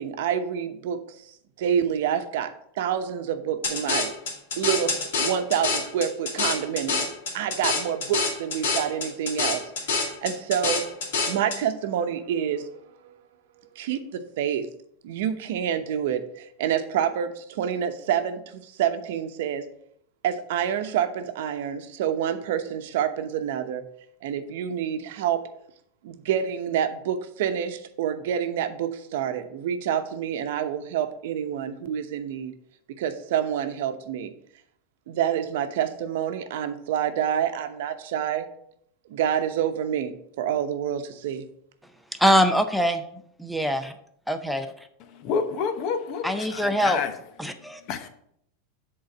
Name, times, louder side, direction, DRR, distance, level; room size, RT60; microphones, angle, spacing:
voice 1, 0.0-4.1 4.6-13.2 13.7-14.7 15.0-19.7 20.2-23.8 24.2-25.4 26.0-32.5 32.9-34.3 35.1-38.5 39.1-41.5, right 9 dB, 70° right, 0.9 m, -28 dB
sound 1, 3.6-11.6, left 4 dB, 80° left, 2.3 m, -27 dB
voice 2, 42.2-43.0 43.4-43.9 44.3-44.7 46.2-47.0 47.4-47.8, equal, ahead, 0.6 m, -23 dB
voice 3, 45.2-47.1 47.9-48.1, left 6 dB, 40° left, 0.9 m, -28 dB
7.8 x 3.9 x 5.9 m
supercardioid pair, 155°, 0 cm